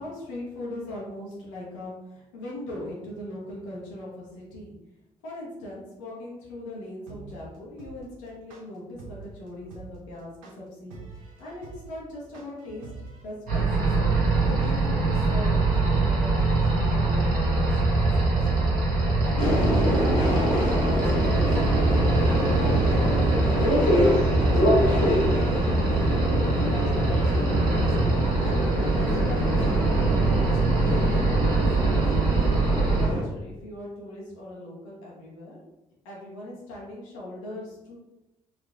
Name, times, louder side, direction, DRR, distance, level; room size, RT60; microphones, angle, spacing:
voice 1, 0.0-4.7 5.2-11.0 11.4-12.9 13.2-13.9 14.4-18.7 19.2-21.6 22.1-28.0 28.4-31.1 31.5-32.3 32.9-35.6 36.0-38.0, left 1 dB, 75° left, -5 dB, 1.0 m, -40 dB
sound 1, 7.1-13.2, right 4 dB, 75° right, 0.6 m, -44 dB
sound 2, 13.5-33.1, right 2 dB, 55° right, 1.4 m, -23 dB
Subway metro underground, 19.4-33.2, equal, 55° left, 1.3 m, -26 dB
3.5 x 3.4 x 2.3 m, 0.95 s
figure-of-eight pair, 45°, 17 cm